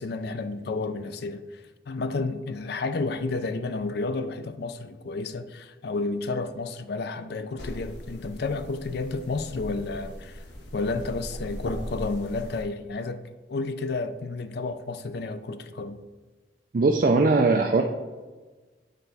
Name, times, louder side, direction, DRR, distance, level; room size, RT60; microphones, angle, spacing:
voice 1, 0.0-10.4 10.7-13.2 13.5-16.0, left 3 dB, 60° left, 0.4 m, -31 dB
sound 1, 7.6-12.6, equal, 80° left, 1.1 m, -39 dB
voice 2, 16.7-17.8, right 3 dB, 50° right, 0.4 m, -20 dB
8.1 x 4.5 x 4.0 m
head